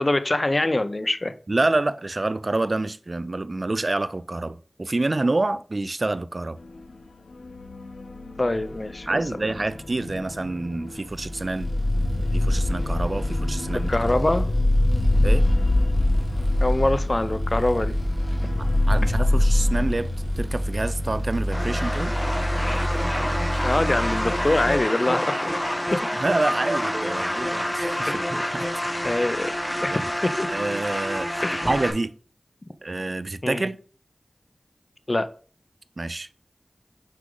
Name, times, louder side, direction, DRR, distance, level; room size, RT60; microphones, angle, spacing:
voice 1, 0.0-1.3 8.4-9.1 13.9-14.5 16.6-17.9 23.6-26.1 28.1-28.3 29.0-29.5 29.8-30.5 31.4-31.7 33.4-33.6 35.1-35.3, left 2 dB, 40° left, 0.6 m, -24 dB
voice 2, 1.5-6.6 9.1-11.7 12.3-13.9 15.2-15.5 18.6-20.1 20.4-22.1 26.2-28.7 29.9-30.1 30.5-32.1 32.8-33.8 36.0-36.5, right 2 dB, 50° right, 0.3 m, -27 dB
sound 1, 6.6-7.0 7.3-21.3, left 1 dB, 85° left, 0.6 m, -25 dB
sound 2, 11.0-24.8, equal, 30° right, 2.1 m, -29 dB
sound 3, 21.5-31.9, equal, 10° left, 1.7 m, -28 dB
6.4 x 5.0 x 3.8 m
wide cardioid pair, 45°, 0 cm